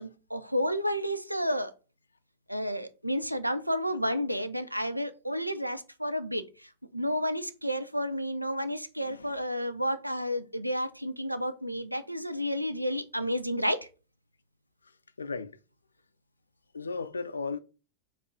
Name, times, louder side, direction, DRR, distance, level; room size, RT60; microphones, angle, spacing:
voice 1, 0.0-1.7 2.5-13.9, equal, 90° right, 0.4 m, -31 dB
voice 2, 9.0-9.4 15.2-15.6 16.7-17.6, left 4 dB, 75° left, 0.4 m, -36 dB
4.5 x 2.5 x 4.8 m
figure-of-eight pair, 90°, 0 cm